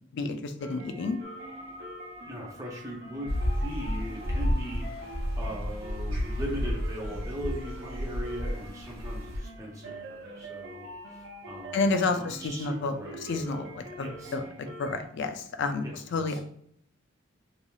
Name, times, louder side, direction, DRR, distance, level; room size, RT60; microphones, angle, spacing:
voice 1, 0.1-1.2 11.7-16.4, left 3 dB, 60° left, 8 dB, 0.4 m, -30 dB
sound 1, 0.6-15.1, right 1 dB, 60° right, 0.6 m, -45 dB
sound 2, 1.2-14.5, left 2 dB, 20° left, 0.7 m, -54 dB
voice 2, 2.2-13.6 14.0-14.3 15.8-16.4, equal, 15° right, -3 dB, 0.7 m, -40 dB
sound 3, 3.3-9.4, equal, 85° right, 0.9 m, -31 dB
3.2 x 2.6 x 2.3 m, 0.68 s
head